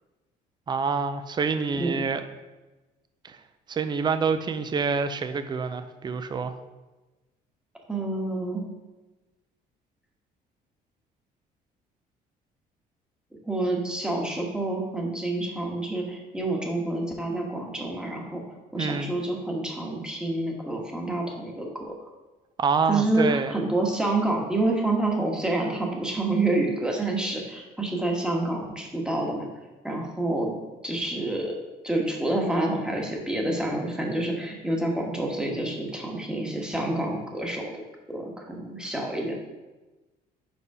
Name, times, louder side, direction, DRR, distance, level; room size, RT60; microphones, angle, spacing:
voice 1, 0.7-2.2 3.2-3.4 3.7-6.6 18.8-19.1 22.6-23.6, right 5 dB, 25° right, 10 dB, 0.5 m, -27 dB
voice 2, 7.9-8.6 13.4-18.4 18.7-21.9 22.9-29.5 29.8-30.5 30.8-31.5 31.8-37.7 38.1-39.4, right 2 dB, 5° right, -1 dB, 1.3 m, -28 dB
5.1 x 4.8 x 4.8 m, 1.2 s
cardioid pair, 110°, 17 cm